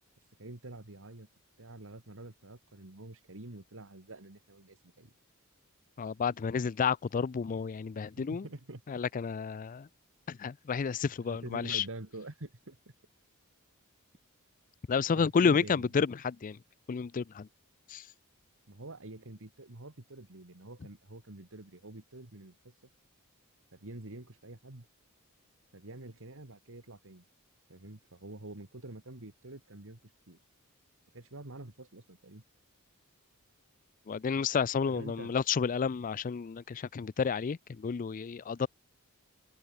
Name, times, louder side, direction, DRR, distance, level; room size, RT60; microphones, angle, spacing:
voice 1, 0.4-1.3 1.6-5.1 8.2-8.8 11.2-12.8 15.1-15.9 18.7-22.7 23.7-24.9 25.7-27.2 27.7-30.4 31.1-32.4 34.9-35.4, right 2 dB, 60° right, 2.1 m, -47 dB
voice 2, 6.0-8.4 8.9-9.9 10.3-11.8 14.9-16.6 16.9-17.5 17.9-18.1 34.1-38.7, left 6 dB, 35° left, 0.4 m, -31 dB
head